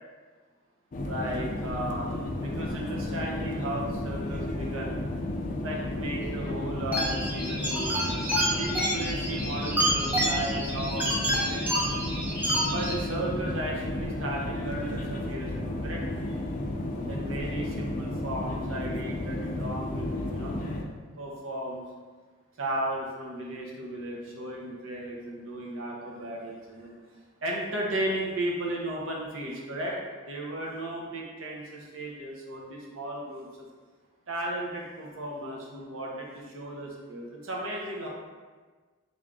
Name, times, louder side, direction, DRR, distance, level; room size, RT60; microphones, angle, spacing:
sound 1, 0.9-20.8, left 1 dB, 40° left, 0.4 m, -33 dB
voice 1, 1.1-2.1 2.4-5.0 5.6-11.7 12.7-16.0 17.1-20.5 21.2-21.8 22.6-26.9 27.4-30.0 30.3-33.7 34.3-38.1, right 1 dB, 85° right, -2 dB, 0.8 m, -35 dB
sound 2, 6.9-12.9, equal, 10° right, 0.7 m, -29 dB
3.4 x 2.5 x 3.6 m, 1.4 s
head